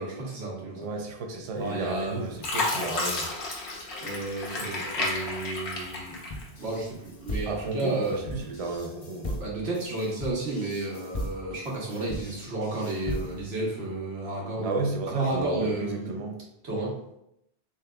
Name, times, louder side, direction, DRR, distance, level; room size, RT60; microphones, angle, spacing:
voice 1, 0.0-0.9 1.6-2.3 4.0-6.2 6.6-8.2 9.4-14.8 15.1-16.2 16.6-16.9, right 2 dB, 75° right, -3 dB, 1.3 m, -32 dB
voice 2, 0.7-3.3 7.5-9.4 14.6-16.4, right 2 dB, 45° right, 3 dB, 0.5 m, -32 dB
Fill (with liquid), 1.7-2.0 2.4-6.8 7.3-8.1 8.6-8.8, left 2 dB, 85° left, 1.1 m, -32 dB
sound 1, 6.3-13.6, equal, 40° left, 0.6 m, -37 dB
3.8 x 3.7 x 2.2 m, 0.80 s
omnidirectional pair, 1.1 m